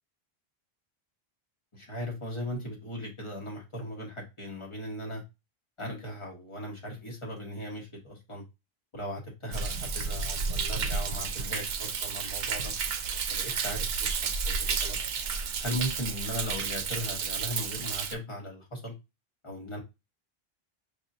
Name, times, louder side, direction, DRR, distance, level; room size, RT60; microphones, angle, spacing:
voice 1, 1.7-5.2 5.8-8.4 8.9-12.7 13.3-15.0 15.6-18.9 19.4-19.8, equal, 30° left, 1.5 m, -38 dB
Thunder, 9.5-18.1, right 5 dB, 75° right, 0.8 m, -31 dB
5.8 x 2.4 x 2.8 m
omnidirectional pair, 1.1 m